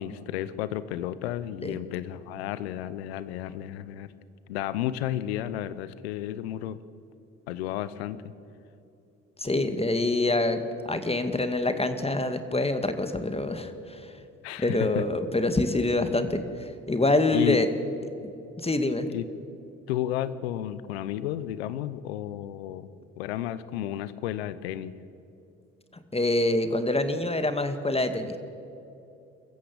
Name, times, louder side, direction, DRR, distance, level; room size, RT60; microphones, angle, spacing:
voice 1, 0.0-4.1 4.5-6.8 7.5-8.2 14.4-15.0 17.3-17.6 19.1-19.3 19.9-22.9 23.2-25.0, left 12 dB, 85° left, 16 dB, 0.8 m, -32 dB
voice 2, 9.4-14.1 14.6-17.7 18.6-19.1 26.1-28.4, left 2 dB, 20° left, 9 dB, 2.1 m, -26 dB
23.5 x 14.5 x 8.7 m, 2.7 s
hypercardioid pair, 50°, 31 cm